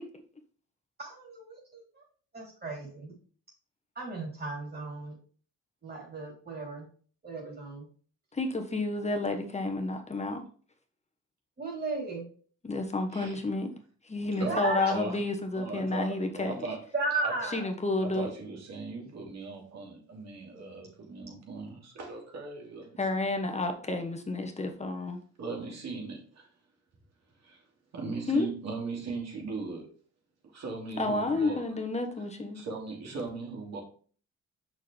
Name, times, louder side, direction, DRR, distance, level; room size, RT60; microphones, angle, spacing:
voice 1, 1.0-2.0 2.3-3.1 3.9-5.2 5.8-6.9 7.2-7.9 11.6-12.2 14.5-14.9 16.9-17.7, right 2 dB, 30° right, -3 dB, 3.5 m, -35 dB
voice 2, 8.3-10.4 12.6-13.7 14.0-16.7 17.5-18.3 23.0-25.2 28.3-28.5 31.0-32.6, left 2 dB, 20° left, 5 dB, 1.2 m, -30 dB
voice 3, 14.4-15.2 15.5-16.8 17.2-17.3 18.0-22.9 25.4-26.5 27.4-27.6 27.9-29.8 30.5-31.6 32.5-33.8, right 3 dB, 60° right, 0 dB, 2.8 m, -38 dB
6.5 x 6.2 x 3.4 m, 0.43 s
cardioid pair, 90°, 30 cm